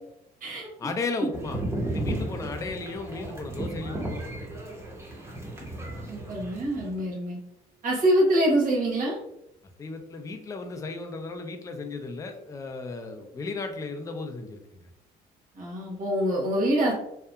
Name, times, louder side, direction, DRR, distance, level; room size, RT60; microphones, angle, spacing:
voice 1, 0.8-4.6 9.8-14.8, left 3 dB, 20° left, 5 dB, 0.4 m, -35 dB
sound 1, 1.3-7.0, right 1 dB, 15° right, 0.7 m, -34 dB
voice 2, 6.1-7.4 7.8-9.2 15.6-16.9, right 1 dB, 55° right, -3 dB, 1.1 m, -25 dB
2.7 x 2.2 x 2.3 m, 0.81 s
cardioid pair, 110°, 17 cm